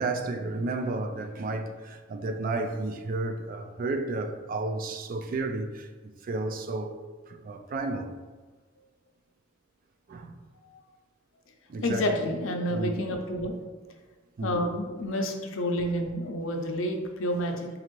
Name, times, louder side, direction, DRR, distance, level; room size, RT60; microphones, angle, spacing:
voice 1, 0.0-5.9 6.2-7.0 7.3-8.1 10.1-10.4 11.7-12.3 12.7-13.2 14.4-14.6, right 2 dB, 45° right, 0.3 m, -32 dB
voice 2, 11.8-13.6 14.4-17.7, equal, 75° left, 0.5 m, -29 dB
4.1 x 2.5 x 3.0 m
head